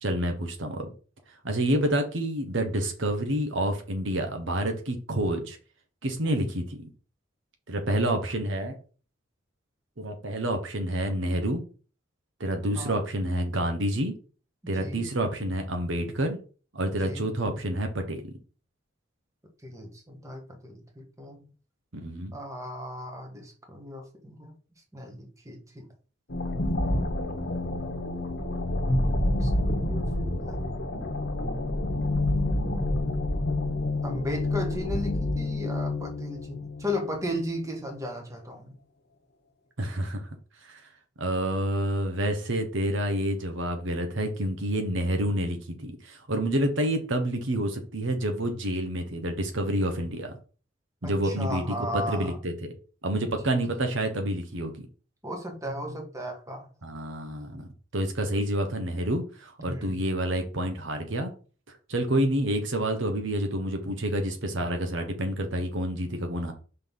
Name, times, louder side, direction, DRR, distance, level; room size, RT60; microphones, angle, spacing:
voice 1, 0.0-0.9 1.4-5.6 6.0-6.6 7.7-8.8 10.0-11.6 12.4-14.1 14.7-16.4 16.7-18.4 21.9-22.3 39.8-40.3 40.6-40.9 41.2-50.3 51.0-52.7 53.0-54.7 56.8-57.7 57.9-61.3 61.7-66.5, right 1 dB, 70° right, 5 dB, 1.1 m, -28 dB
voice 2, 14.6-15.1 17.0-17.3 19.6-21.4 22.3-24.5 24.9-25.9 28.7-28.8 29.4-30.6 34.0-38.7 51.0-52.4 55.2-56.7 59.6-60.0, left 1 dB, 15° right, 2 dB, 1.5 m, -36 dB
sound 1, 26.3-37.3, left 1 dB, 55° left, 1.2 m, -28 dB
5.5 x 4.1 x 5.4 m, 0.38 s
head